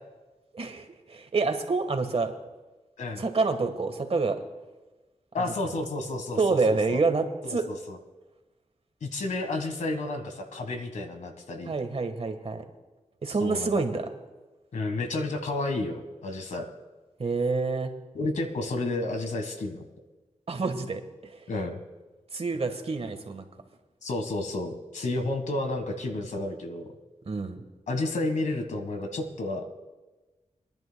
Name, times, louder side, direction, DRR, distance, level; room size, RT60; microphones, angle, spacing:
voice 1, 0.5-2.3 3.2-4.4 5.6-5.7 6.4-7.6 11.7-12.6 13.2-14.1 17.2-17.9 20.5-21.4 22.3-23.5 27.2-27.6, right 3 dB, 55° right, 6 dB, 1.4 m, -27 dB
voice 2, 5.3-7.0 7.4-8.0 9.0-11.7 13.4-13.8 14.7-16.7 18.1-19.8 21.5-21.8 24.0-26.9 27.9-29.7, left 2 dB, 85° left, 6 dB, 1.5 m, -31 dB
26.5 x 10.5 x 2.2 m, 1.2 s
cardioid pair, 60°, 12 cm